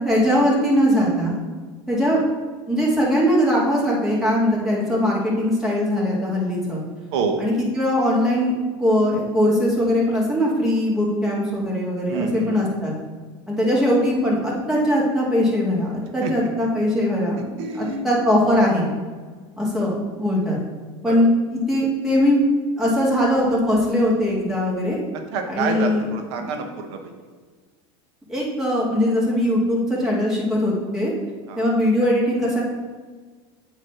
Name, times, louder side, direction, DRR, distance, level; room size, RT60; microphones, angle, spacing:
voice 1, 0.0-1.4 1.9-2.2 2.7-6.8 7.4-8.5 8.8-12.9 13.5-17.4 17.8-18.9 19.6-20.6 21.0-21.3 21.5-22.4 22.8-25.0 25.5-26.1 28.3-31.1 31.6-32.6, equal, 5° right, -5 dB, 2.1 m, -20 dB
voice 2, 7.1-7.4 12.1-12.6 16.2-16.7 17.6-18.0 21.0-21.2 25.3-27.1 31.5-31.7, right 5 dB, 70° right, 4 dB, 1.2 m, -27 dB
7.9 x 3.2 x 5.7 m, 1.5 s
supercardioid pair, 120°, 15 cm